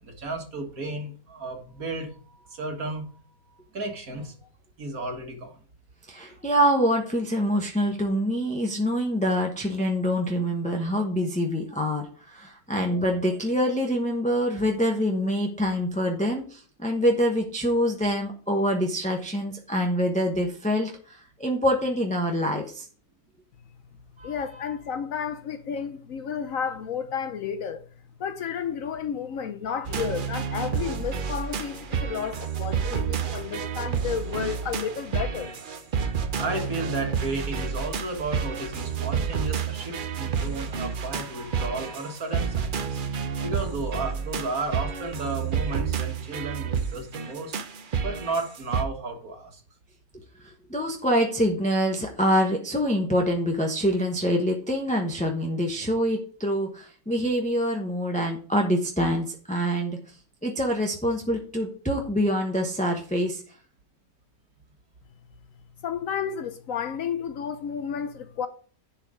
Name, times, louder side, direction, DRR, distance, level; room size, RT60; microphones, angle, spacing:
voice 1, 0.0-3.0 3.7-4.5 4.8-5.6 6.3-6.4 12.9-13.0 24.2-24.7 33.3-33.4 36.4-47.5 48.0-49.6, right 2 dB, 55° right, 2.0 m, -33 dB
voice 2, 6.1-22.9 50.4-60.0 60.4-63.4, equal, 5° left, 0.7 m, -25 dB
voice 3, 24.2-27.8 28.2-35.5 65.8-68.5, left 7 dB, 65° left, 0.9 m, -32 dB
sound 1, 29.8-48.8, right 7 dB, 85° right, 0.4 m, -30 dB
11.0 x 4.4 x 4.9 m
omnidirectional pair, 1.9 m